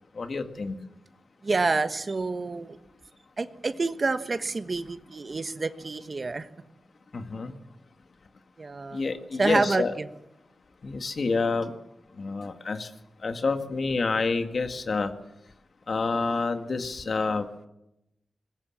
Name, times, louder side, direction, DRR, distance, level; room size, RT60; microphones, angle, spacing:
voice 1, 0.1-0.8 7.1-7.5 8.9-9.9 10.8-11.8 12.2-12.9 13.2-15.1 15.9-17.5, left 4 dB, 55° left, 7 dB, 2.0 m, -28 dB
voice 2, 1.4-2.8 3.4-6.5 8.6-9.0 9.4-10.1, right 3 dB, 40° right, 11 dB, 1.2 m, -28 dB
22.0 x 20.5 x 7.4 m, 0.86 s
wide cardioid pair, 90°, 0 cm